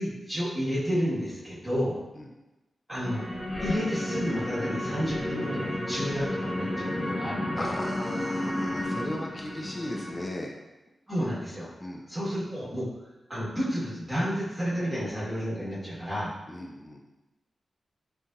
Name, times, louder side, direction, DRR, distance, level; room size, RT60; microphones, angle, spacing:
voice 1, 0.0-2.0 2.9-3.2 3.6-7.7 11.1-11.7 12.1-12.9 13.3-16.3, equal, 15° right, -9 dB, 1.2 m, -31 dB
sound 1, 3.0-10.2, left 1 dB, 75° left, 1.2 m, -32 dB
voice 2, 7.6-10.5 11.8-12.0 16.5-17.0, left 1 dB, 30° left, 0 dB, 0.4 m, -37 dB
3.7 x 2.6 x 2.2 m, 1.0 s
cardioid pair, 45°, 0 cm